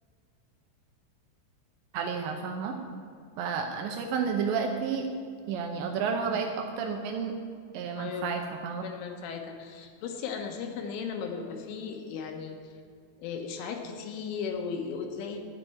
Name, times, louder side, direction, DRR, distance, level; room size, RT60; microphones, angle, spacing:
voice 1, 1.9-2.8 3.4-5.1 5.5-7.3 7.7-8.8, right 6 dB, 80° right, 4 dB, 2.7 m, -31 dB
voice 2, 8.0-8.3 8.8-12.7 13.2-15.4, left 6 dB, 80° left, 4 dB, 3.5 m, -36 dB
12.0 x 6.7 x 9.9 m, 2.3 s
omnidirectional pair, 5.8 m